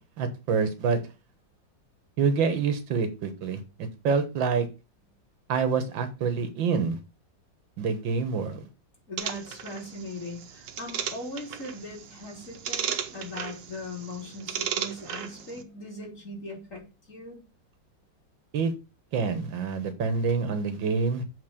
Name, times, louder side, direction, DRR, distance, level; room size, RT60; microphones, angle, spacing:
voice 1, 0.2-1.0 2.2-3.6 4.0-4.7 5.5-7.0 7.8-8.7 18.5-18.7 19.1-21.2, right 5 dB, 90° right, 9 dB, 2.0 m, -26 dB
voice 2, 9.1-16.8 17.1-17.4, left 2 dB, 40° left, -2 dB, 4.0 m, -39 dB
sound 1, 9.2-15.6, right 8 dB, 75° right, 1.6 m, -36 dB
8.0 x 4.1 x 6.6 m, 0.30 s
omnidirectional pair, 2.0 m